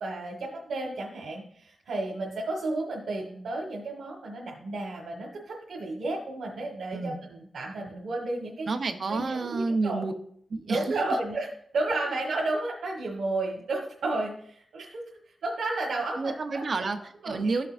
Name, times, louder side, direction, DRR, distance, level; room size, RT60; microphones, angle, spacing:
voice 1, 0.0-8.7 9.1-10.0 10.7-11.5 11.7-15.0 15.4-16.6 17.2-17.5, right 2 dB, 85° right, -2 dB, 1.3 m, -32 dB
voice 2, 8.7-10.1 10.5-11.0 12.0-12.1 16.2-17.7, right 3 dB, 45° right, 6 dB, 0.7 m, -29 dB
13.5 x 6.6 x 2.5 m, 0.62 s
wide cardioid pair, 180°, 0 cm